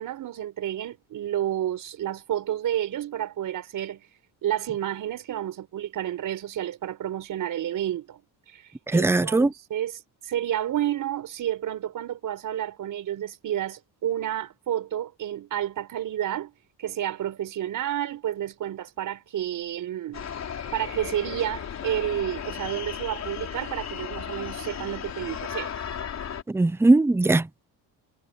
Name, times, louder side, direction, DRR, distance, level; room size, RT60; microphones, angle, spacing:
voice 1, 0.0-4.1 4.4-8.2 8.5-16.5 16.8-20.3 20.7-25.7, right 11 dB, 60° right, 5.2 m, -30 dB
voice 2, 8.9-9.5 26.5-27.6, right 2 dB, 5° right, 0.7 m, -20 dB
sound 1, 20.1-26.4, left 8 dB, 45° left, 4.0 m, -35 dB
cardioid pair, 125°, 37 cm